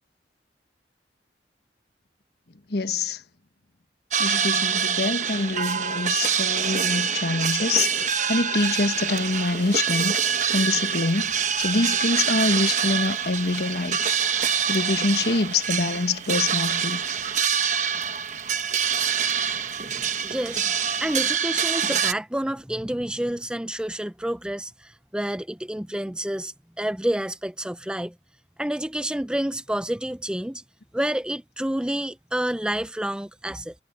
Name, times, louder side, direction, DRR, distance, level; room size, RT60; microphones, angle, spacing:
voice 1, 2.7-3.2 4.2-10.2 10.5-14.2 14.6-17.0, left 3 dB, 65° left, 1.3 m, -25 dB
sound 1, 4.1-22.1, right 7 dB, 45° right, 1.1 m, -25 dB
sound 2, 8.9-21.4, right 11 dB, 60° right, 2.5 m, -47 dB
voice 2, 20.2-20.7 21.0-28.1 28.6-30.6 30.9-33.7, right 1 dB, 5° right, 0.5 m, -29 dB
head